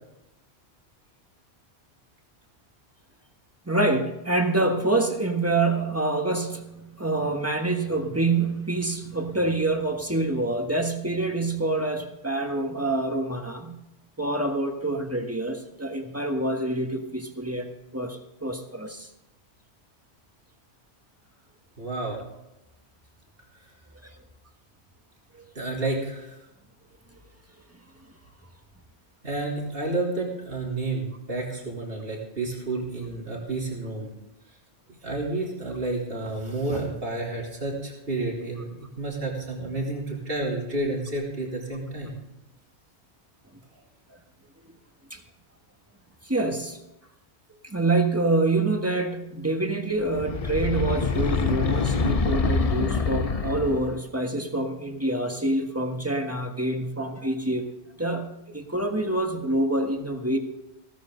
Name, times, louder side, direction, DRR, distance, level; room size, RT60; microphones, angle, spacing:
voice 1, 3.7-13.8 14.2-19.1 45.1-45.2 46.2-46.8 47.6-57.7 58.0-60.4, right 2 dB, 15° right, 4 dB, 1.5 m, -26 dB
voice 2, 21.8-22.2 25.6-26.4 29.2-34.1 35.0-42.2, right 2 dB, 60° right, -2 dB, 3.7 m, -30 dB
sound 1, 50.1-54.0, left 4 dB, 40° left, 0.7 m, -25 dB
16.5 x 14.0 x 3.9 m, 0.93 s
omnidirectional pair, 1.1 m